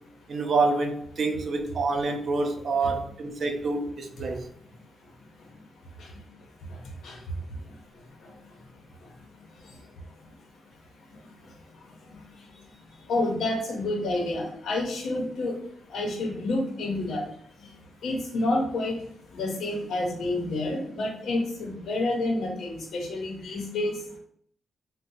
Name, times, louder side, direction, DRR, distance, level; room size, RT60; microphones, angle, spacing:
voice 1, 0.3-4.5, right 3 dB, 45° right, 0.5 m, -27 dB
voice 2, 13.1-15.5 15.9-17.2 18.0-18.9 19.3-24.0, left 2 dB, 75° left, 0.8 m, -28 dB
2.7 x 2.1 x 4.0 m
wide cardioid pair, 140°, 0 cm